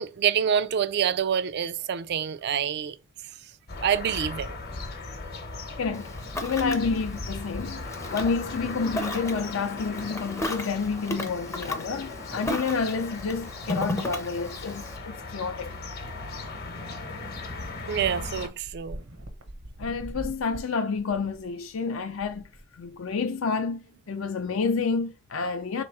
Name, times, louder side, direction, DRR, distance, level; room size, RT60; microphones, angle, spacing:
voice 1, 0.0-3.0 3.8-4.5 17.9-19.0, right 8 dB, 55° right, 0.3 m, -26 dB
sound 1, 3.7-18.5, left 3 dB, 50° left, 0.9 m, -38 dB
voice 2, 5.8-6.1 6.4-7.8 8.1-15.7 19.8-22.4 22.8-23.8 24.1-25.8, left 5 dB, 70° left, 0.5 m, -29 dB
Ocean, 5.9-15.0, left 1 dB, 15° left, 0.5 m, -36 dB
sound 2, 18.0-23.1, right 1 dB, 70° right, 0.8 m, -43 dB
3.4 x 2.9 x 4.6 m
head